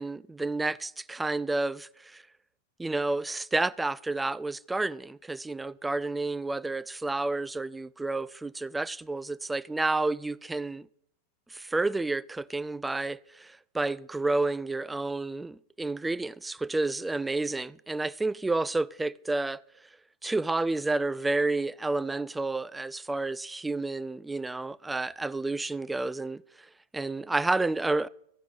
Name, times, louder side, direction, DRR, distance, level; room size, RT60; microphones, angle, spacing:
voice 1, 0.0-2.2 2.8-10.9 11.5-19.6 20.2-28.1, right 2 dB, 10° right, 0.4 m, -30 dB
14.5 x 5.9 x 8.0 m
figure-of-eight pair, 90°, 0 cm